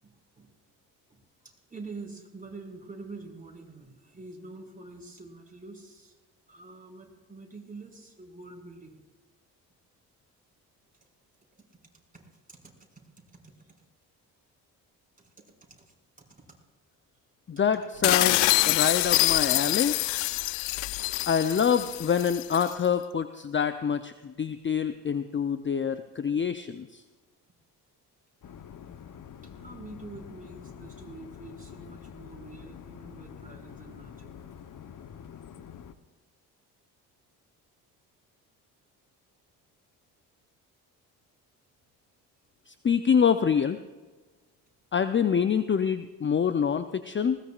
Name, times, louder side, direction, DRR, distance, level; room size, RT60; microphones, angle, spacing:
voice 1, 0.0-0.5 1.1-6.2 6.5-9.0 12.1-12.7 13.3-13.8 15.2-15.9 29.4-34.3, right 3 dB, 15° right, 0 dB, 5.8 m, -46 dB
voice 2, 17.5-18.4 18.7-20.0 21.3-27.0 42.7-43.8 44.9-47.4, left 7 dB, 25° left, 11 dB, 0.7 m, -26 dB
sound 1, 18.0-22.7, left 20 dB, 70° left, 0.5 m, -25 dB
sound 2, 28.4-35.9, left 8 dB, 40° left, 1.0 m, -46 dB
20.0 x 18.5 x 2.5 m, 1.3 s
hypercardioid pair, 50°, 46 cm